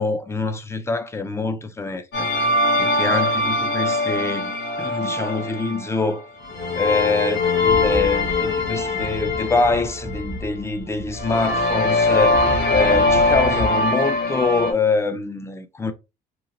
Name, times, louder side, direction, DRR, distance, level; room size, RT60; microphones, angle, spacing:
voice 1, 0.0-2.3 2.8-6.3 6.7-15.9, left 3 dB, 15° left, 0.4 m, -24 dB
sound 1, 2.1-6.0 6.4-10.5 11.1-14.7, left 2 dB, 85° left, 1.1 m, -22 dB
sound 2, 7.6-13.7, right 1 dB, 50° right, 0.6 m, -33 dB
2.9 x 2.3 x 2.6 m
cardioid pair, 110°, 17 cm